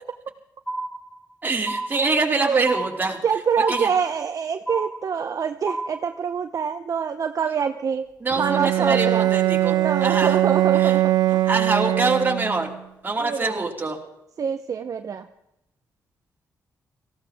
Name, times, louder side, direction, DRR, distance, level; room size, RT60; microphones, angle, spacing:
sound 1, 0.7-1.3 1.7-2.3 2.7-3.3 3.7-4.3 4.7-5.3 5.7-6.2, right 2 dB, 5° left, 1.7 m, -31 dB
voice 1, 1.4-3.2 3.7-3.9 8.2-10.3 10.8-10.9 11.5-12.7 13.0-14.0, right 3 dB, 25° right, 0 dB, 2.9 m, -24 dB
voice 2, 3.2-8.1 8.4-9.3 9.7-11.4 13.2-13.6 14.4-15.3, right 6 dB, 55° right, 7 dB, 0.8 m, -25 dB
Bowed string instrument, 8.3-12.7, right 14 dB, 85° right, 0.8 m, -21 dB
18.5 x 15.5 x 3.6 m, 0.84 s
cardioid pair, 80°, 7 cm